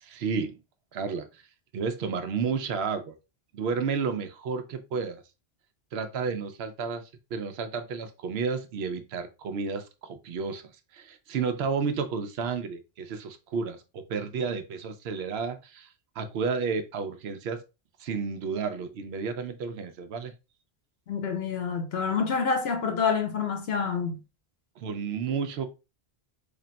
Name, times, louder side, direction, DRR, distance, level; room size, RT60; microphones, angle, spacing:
voice 1, 0.0-0.6 0.9-1.3 1.7-3.1 3.5-5.2 5.9-7.0 7.3-15.9 16.2-17.6 18.0-20.3 24.8-25.7, right 5 dB, 80° right, 0.8 m, -31 dB
voice 2, 21.1-24.2, left 5 dB, 80° left, 1.0 m, -27 dB
3.4 x 2.1 x 3.9 m
omnidirectional pair, 1.1 m